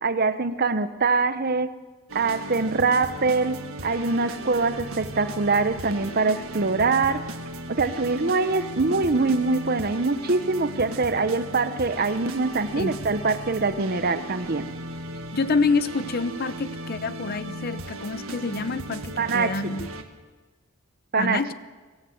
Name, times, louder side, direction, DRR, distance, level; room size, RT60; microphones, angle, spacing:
voice 1, 0.0-1.7 2.1-3.6 3.8-7.3 7.7-14.7 19.2-19.8 21.1-21.4, right 3 dB, 45° right, 12 dB, 0.9 m, -24 dB
sound 1, 2.1-20.0, right 1 dB, 80° right, 1.7 m, -36 dB
voice 2, 15.3-19.9 21.2-21.5, left 4 dB, 45° left, 14 dB, 0.7 m, -27 dB
24.0 x 15.0 x 8.0 m, 1.3 s
head